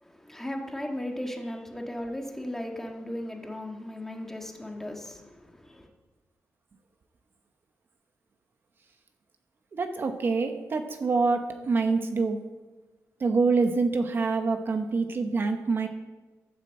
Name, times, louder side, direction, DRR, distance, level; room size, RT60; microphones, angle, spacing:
voice 1, 0.0-5.9, left 1 dB, 5° left, 1.6 m, -36 dB
voice 2, 9.7-12.4 13.2-15.9, right 4 dB, 40° right, 1.0 m, -26 dB
12.5 x 8.9 x 7.6 m
wide cardioid pair, 170°, 6 cm